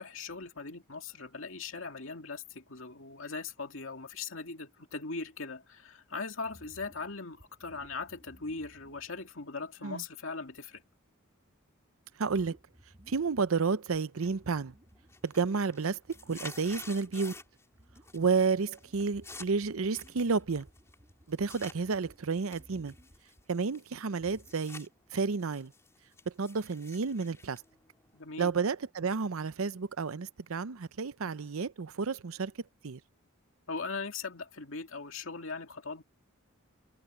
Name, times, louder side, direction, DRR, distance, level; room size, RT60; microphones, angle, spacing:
voice 1, 0.0-10.8 28.1-28.5 31.2-31.3 33.7-36.0, left 4 dB, 70° left, 2.3 m, -40 dB
sound 1, 6.4-9.5 10.0-10.1 10.5-10.8 12.2-13.6 13.9-15.6 15.9-24.6, equal, 25° right, 2.6 m, -59 dB
voice 2, 12.2-12.6 13.1-14.7 15.2-16.0 16.3-17.3 18.1-20.7 21.3-22.9 23.5-25.7 26.3-27.6 28.4-32.5 32.8-33.0, right 4 dB, 80° right, 0.7 m, -31 dB
sound 2, 14.2-14.6 14.9-17.7 18.0-18.5 18.7-21.8 22.3-24.9 25.2-28.4, left 3 dB, 15° left, 3.6 m, -50 dB
head